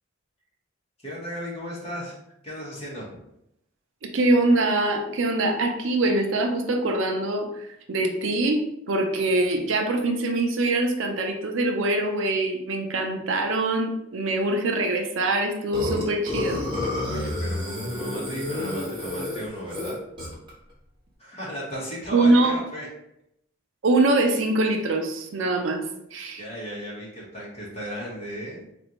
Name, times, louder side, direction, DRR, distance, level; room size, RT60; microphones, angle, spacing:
voice 1, 1.0-2.2 2.4-3.1 17.0-20.0 21.2-22.9 26.4-28.7, equal, 30° left, -5 dB, 1.3 m, -35 dB
voice 2, 4.0-16.7 22.1-22.6 23.8-25.9 26.1-26.4, right 2 dB, 70° right, 4 dB, 0.5 m, -23 dB
Burping eructation, 15.7-20.5, left 1 dB, 25° right, 1.2 m, -30 dB
4.2 x 2.6 x 3.0 m, 0.80 s
head